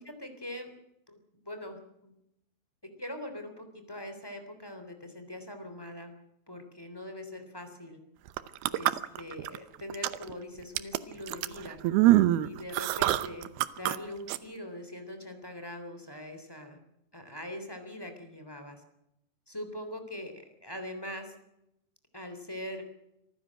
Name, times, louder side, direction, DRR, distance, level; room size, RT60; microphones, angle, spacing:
voice 1, 0.2-0.7 1.1-1.2 1.4-2.1 3.0-6.1 6.5-8.0 8.7-11.8 12.4-13.5 13.8-16.8 17.1-18.8 19.5-21.3 22.1-22.8, left 1 dB, 5° left, 6 dB, 2.3 m, -42 dB
sound 1, 8.3-9.6 9.9-10.3 10.8-14.0 14.3-14.4, right 15 dB, 75° right, 2.4 m, -25 dB
26.0 x 15.0 x 7.6 m, 0.84 s
omnidirectional pair, 5.4 m